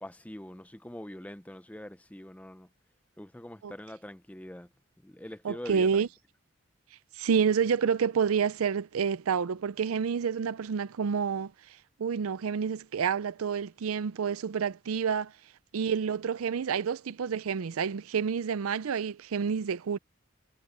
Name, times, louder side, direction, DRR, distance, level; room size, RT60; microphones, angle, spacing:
voice 1, 0.0-2.7 3.2-4.7 5.0-6.1, left 1 dB, 5° left, 0.6 m, -44 dB
voice 2, 5.4-6.1 7.1-11.5 12.0-15.3 15.7-20.0, right 6 dB, 85° right, 0.5 m, -28 dB
head